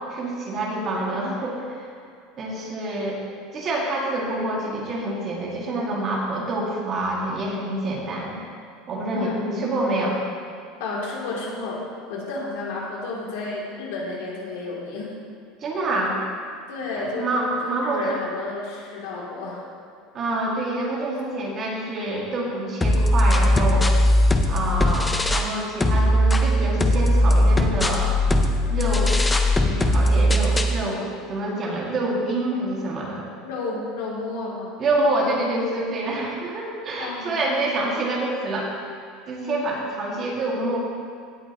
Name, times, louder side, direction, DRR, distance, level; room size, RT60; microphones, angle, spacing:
voice 1, 0.1-1.9 2.4-3.2 3.5-8.4 8.9-9.3 9.6-10.2 15.6-16.1 17.0-18.2 20.1-23.9 24.5-28.1 28.7-29.2 29.6-33.2 34.8-38.7 39.3-40.8, right 2 dB, 30° right, -3 dB, 2.0 m, -27 dB
voice 2, 9.1-9.8 10.8-11.8 12.1-15.1 16.7-17.4 17.6-19.6 33.4-34.8 37.0-37.4, left 3 dB, 80° left, -4 dB, 2.9 m, -31 dB
sound 1, 22.8-25.5 25.8-30.8, left 1 dB, 10° left, 0.5 m, -19 dB
17.0 x 8.7 x 3.0 m, 2.3 s
cardioid pair, 170°, 0 cm